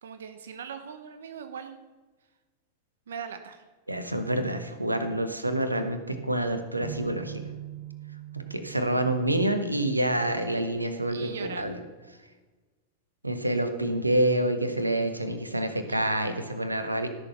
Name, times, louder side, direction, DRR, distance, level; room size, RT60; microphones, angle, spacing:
voice 1, 0.0-1.8 3.1-3.6 11.1-11.8 15.9-16.4, right 7 dB, 65° right, 9 dB, 0.8 m, -41 dB
voice 2, 3.9-7.5 8.3-11.8 13.2-17.1, right 1 dB, 90° right, 8 dB, 1.1 m, -27 dB
sound 1, 6.8-10.8, right 8 dB, 45° left, 2.2 m, -43 dB
13.5 x 6.6 x 5.8 m, 1.3 s
figure-of-eight pair, 90°, 0 cm